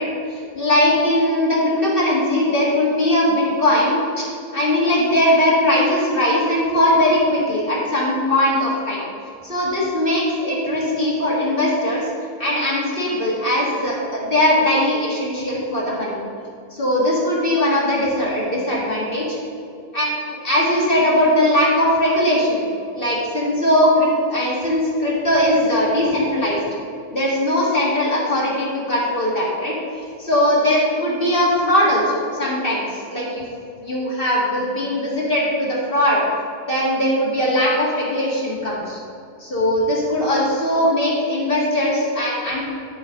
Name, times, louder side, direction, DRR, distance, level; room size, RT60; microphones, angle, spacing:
voice 1, 0.0-4.2 4.5-9.0 9.4-12.0 12.4-16.2 16.7-19.4 19.9-22.6 22.9-26.6 27.1-29.7 30.2-32.8 33.1-33.4 33.8-36.2 36.7-39.0 39.4-42.7, left 1 dB, 35° left, -5 dB, 0.8 m, -20 dB
11.0 x 5.0 x 5.2 m, 2.6 s
omnidirectional pair, 3.5 m